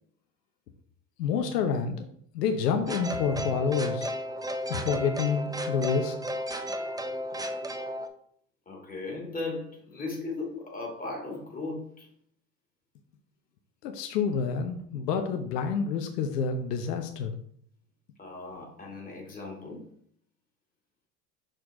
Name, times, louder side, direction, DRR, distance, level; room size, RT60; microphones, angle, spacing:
voice 1, 1.2-2.1 2.3-4.1 4.7-6.2 13.8-17.3, left 6 dB, 80° left, 0.9 m, -28 dB
sound 1, 2.9-8.1, equal, 10° right, 0.6 m, -33 dB
voice 2, 8.7-12.1 18.2-19.8, left 3 dB, 15° left, 2.8 m, -37 dB
6.3 x 4.6 x 3.7 m
hypercardioid pair, 80°, 47 cm